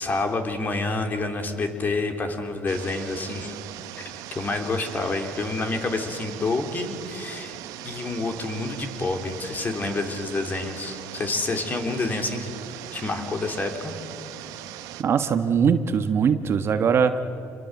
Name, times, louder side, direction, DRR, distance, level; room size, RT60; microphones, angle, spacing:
voice 1, 0.0-3.6 4.0-4.1 4.3-7.5 7.8-12.5 12.9-13.9, left 3 dB, 30° left, 5 dB, 3.4 m, -28 dB
sound 1, 2.7-15.0, right 13 dB, 80° right, 1.4 m, -39 dB
voice 2, 15.0-17.2, right 6 dB, 45° right, 9 dB, 1.3 m, -21 dB
27.5 x 22.0 x 8.0 m, 2.8 s
cardioid pair, 105°, 6 cm